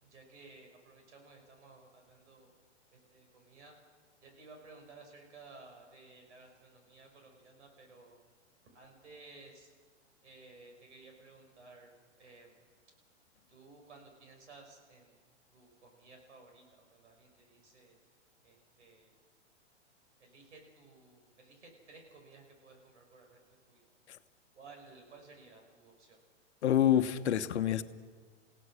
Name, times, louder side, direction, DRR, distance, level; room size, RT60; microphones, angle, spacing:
voice 1, 0.0-2.5 2.9-3.8 4.2-8.2 8.7-9.7 10.2-11.9 12.2-12.6 13.5-15.2 15.5-17.9 18.4-19.1 20.2-23.9 24.5-26.2, right 3 dB, 75° right, 3 dB, 6.0 m, -56 dB
voice 2, 26.6-27.8, left 10 dB, 70° left, 10 dB, 1.2 m, -27 dB
29.5 x 16.5 x 6.4 m, 1.5 s
hypercardioid pair, 125°, 35 cm